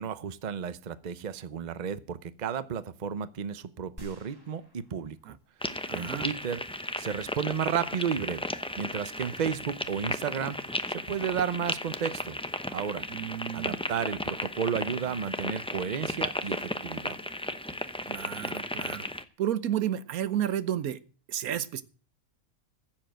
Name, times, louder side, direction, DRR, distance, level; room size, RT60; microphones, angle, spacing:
voice 1, 0.0-5.2 5.9-6.6 7.0-8.5 8.8-10.6 10.9-12.4 12.7-13.1 13.5-17.2, right 7 dB, 40° right, 14 dB, 0.8 m, -32 dB
sound 1, 4.0-5.7 6.2-6.3, equal, 15° right, 2.4 m, -51 dB
sound 2, 5.6-19.2, left 1 dB, 5° left, 0.5 m, -35 dB
voice 2, 5.9-6.3 13.1-13.8 18.1-19.1 19.4-21.0 21.3-21.8, right 11 dB, 85° right, 15 dB, 1.3 m, -31 dB
15.0 x 7.5 x 7.7 m, 0.39 s
omnidirectional pair, 1.5 m